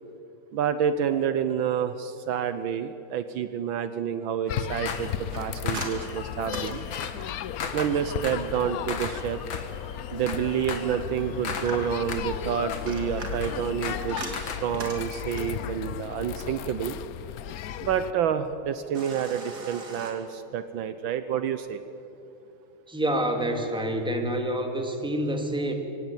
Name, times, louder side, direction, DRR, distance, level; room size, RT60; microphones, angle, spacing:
voice 1, 0.5-6.8 7.7-9.4 10.1-17.0 17.8-21.8, right 8 dB, 70° right, 11 dB, 1.5 m, -29 dB
sound 1, 4.5-18.1, left 10 dB, 90° left, 0.7 m, -35 dB
sound 2, 4.5-5.2 5.7-14.7, left 5 dB, 65° left, 2.5 m, -38 dB
sound 3, 5.3-7.6 10.9-12.1 12.7-15.6 18.9-20.1, right 2 dB, 50° right, 3.2 m, -40 dB
voice 2, 22.9-25.7, right 1 dB, ahead, 4 dB, 2.0 m, -27 dB
24.0 x 17.5 x 9.0 m, 3.0 s
omnidirectional pair, 2.3 m